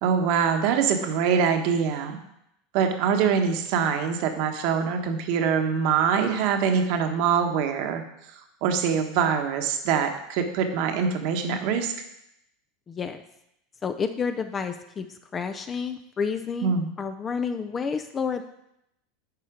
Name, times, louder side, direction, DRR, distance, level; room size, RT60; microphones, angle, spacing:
voice 1, 0.0-2.2 2.7-8.0 8.3-11.9 16.6-16.9, right 7 dB, 60° right, 6 dB, 1.2 m, -24 dB
voice 2, 12.9-13.2 13.8-18.4, left 6 dB, 25° left, 9 dB, 0.5 m, -30 dB
10.5 x 4.3 x 5.0 m, 0.81 s
supercardioid pair, 130°, 0 cm